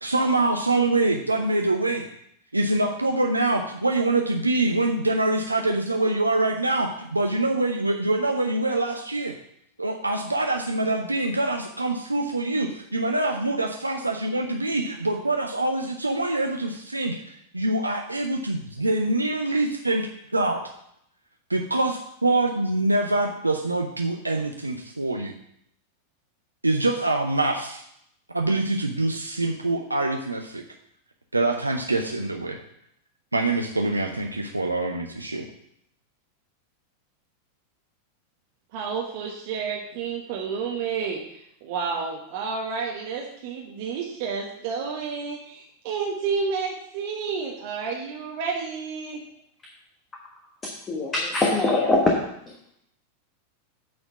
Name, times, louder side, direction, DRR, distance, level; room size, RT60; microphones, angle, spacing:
voice 1, 0.0-2.1 2.5-9.3 9.8-20.6 21.5-25.3 26.6-27.8 28.3-30.6 31.3-32.6 33.3-35.4, right 2 dB, 85° right, 3 dB, 0.6 m, -25 dB
voice 2, 38.7-41.2 41.6-49.2, right 5 dB, 50° right, 0 dB, 1.2 m, -30 dB
voice 3, 50.9-52.2, left 2 dB, 20° left, -1 dB, 1.3 m, -21 dB
8.7 x 4.3 x 7.0 m, 0.73 s
figure-of-eight pair, 90°, 0 cm